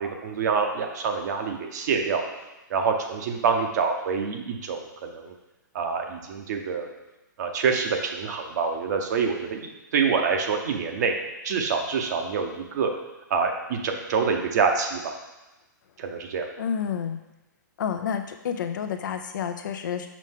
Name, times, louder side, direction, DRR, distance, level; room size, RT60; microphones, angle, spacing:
voice 1, 0.0-2.2 2.7-5.3 5.7-6.9 7.4-11.1 11.4-12.9 13.3-15.1 16.0-16.5, right 5 dB, 60° right, 3 dB, 1.0 m, -26 dB
voice 2, 16.6-17.2 17.8-20.1, left 7 dB, 70° left, 6 dB, 0.5 m, -29 dB
5.4 x 5.0 x 3.7 m, 1.0 s
hypercardioid pair, 130°, 11 cm